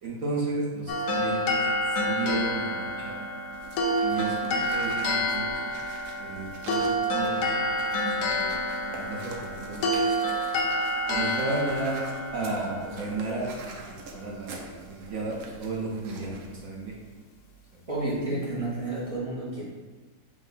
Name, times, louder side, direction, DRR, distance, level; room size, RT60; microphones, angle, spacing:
voice 1, 0.0-1.7 2.0-3.3 4.0-5.8 6.2-7.7 8.2-8.6 8.8-10.1 11.1-16.9 17.7-17.8, right 2 dB, 60° right, -4 dB, 1.2 m, -33 dB
sound 1, 0.9-14.1, equal, 75° left, 1.1 m, -29 dB
sound 2, 3.5-16.6, right 3 dB, 80° right, 1.2 m, -46 dB
voice 2, 17.9-19.7, right 2 dB, 35° right, -6 dB, 0.5 m, -31 dB
6.1 x 2.2 x 3.9 m, 1.3 s
omnidirectional pair, 1.8 m